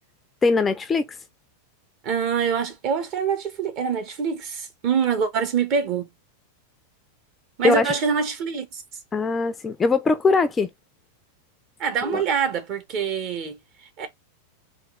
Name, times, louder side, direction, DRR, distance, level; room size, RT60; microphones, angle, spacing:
voice 1, 0.4-1.1 7.6-7.9 9.1-10.7 12.0-12.2, left 4 dB, 15° left, 0.4 m, -21 dB
voice 2, 2.0-6.1 7.6-8.8 11.8-13.6 14.0-14.1, right 6 dB, 40° right, 1.0 m, -25 dB
3.4 x 2.6 x 3.6 m
figure-of-eight pair, 90°, 0 cm